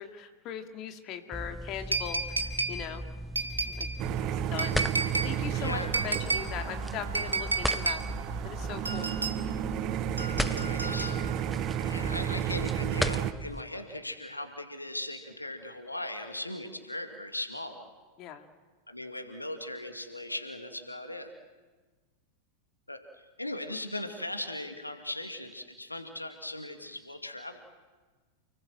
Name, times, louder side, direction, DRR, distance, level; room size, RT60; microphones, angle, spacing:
voice 1, 0.0-3.0 3.8-3.9 4.2-4.8 5.2-8.0 8.4-9.2 18.2-18.5, left 9 dB, 40° left, 6 dB, 2.2 m, -40 dB
sound 1, 1.3-13.6, equal, ahead, 0.9 m, -37 dB
sound 2, 1.9-2.8 3.4-4.0 4.6-5.3 5.9-6.5 7.1-8.0 8.9-9.4 10.2-11.4 12.4-12.5, right 3 dB, 80° right, 2.3 m, -31 dB
sound 3, 4.0-13.3, right 11 dB, 40° right, 1.1 m, -33 dB
voice 2, 5.5-5.9 10.4-11.1 11.7-17.9 18.9-21.3 22.9-23.0 23.4-27.6, left 1 dB, 85° left, 6 dB, 2.3 m, -38 dB
29.5 x 20.0 x 7.8 m, 1.4 s
figure-of-eight pair, 90°, 0 cm